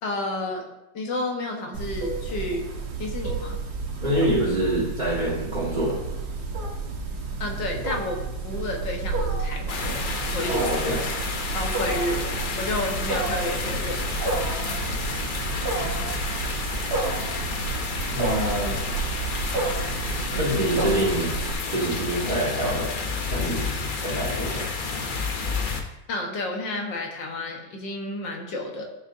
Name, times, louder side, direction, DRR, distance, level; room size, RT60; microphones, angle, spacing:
voice 1, 0.0-0.7 0.9-2.7 3.0-3.6 7.4-10.7 11.5-14.2 26.1-28.9, left 1 dB, 70° left, 1 dB, 2.0 m, -31 dB
Wild animals, 1.7-21.5, right 4 dB, 60° right, 1.7 m, -31 dB
voice 2, 4.0-6.0 10.4-11.0 18.1-18.8 20.3-21.3 21.7-22.9 23.3-23.7 24.0-24.7, right 1 dB, 25° right, -9 dB, 2.0 m, -26 dB
sound 1, 9.7-25.8, left 4 dB, 55° left, 0.5 m, -30 dB
13.5 x 6.6 x 2.7 m, 0.94 s
omnidirectional pair, 2.0 m